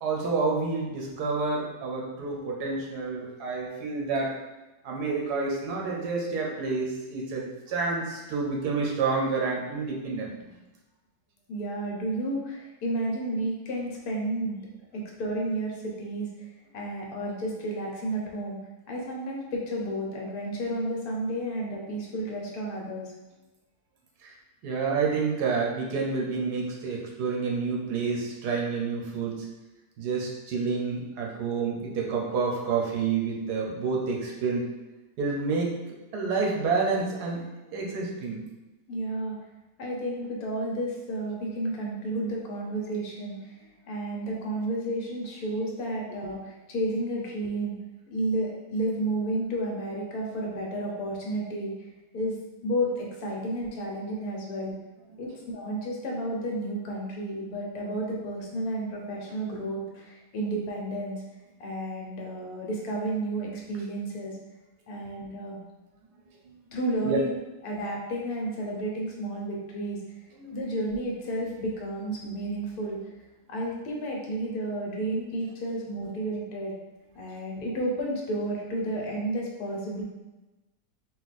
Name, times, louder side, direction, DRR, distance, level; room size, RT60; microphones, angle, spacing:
voice 1, 0.0-4.4 4.8-10.5 24.2-24.3 24.6-29.5 30.0-34.7 35.2-35.7 36.1-38.4 55.1-55.2 67.0-67.2 70.3-70.5, right 4 dB, 85° right, -1 dB, 1.4 m, -29 dB
voice 2, 11.5-14.6 14.9-16.3 16.7-18.6 18.9-23.1 38.9-39.4 39.8-47.8 48.1-51.7 52.1-52.4 52.6-54.7 55.2-61.2 61.6-64.4 64.9-65.6 66.7-67.4 67.6-70.0 70.5-73.0 73.5-76.7 77.1-80.0, right 1 dB, 70° left, -2 dB, 1.3 m, -31 dB
4.2 x 2.3 x 4.1 m, 1.1 s
omnidirectional pair, 1.7 m